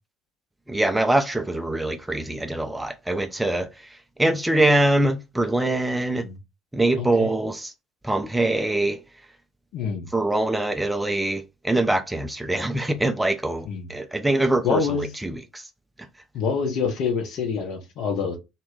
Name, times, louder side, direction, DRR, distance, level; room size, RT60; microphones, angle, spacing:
voice 1, 0.7-3.7 4.2-6.2 6.7-7.7 8.0-9.0 10.1-14.8 15.2-15.6, right 1 dB, 10° right, 0.3 m, -23 dB
voice 2, 7.0-7.3 9.7-10.1 13.6-13.9 14.6-15.1 16.3-18.4, left 5 dB, 50° left, 0.8 m, -26 dB
2.2 x 2.2 x 3.5 m
figure-of-eight pair, 60°, 0 cm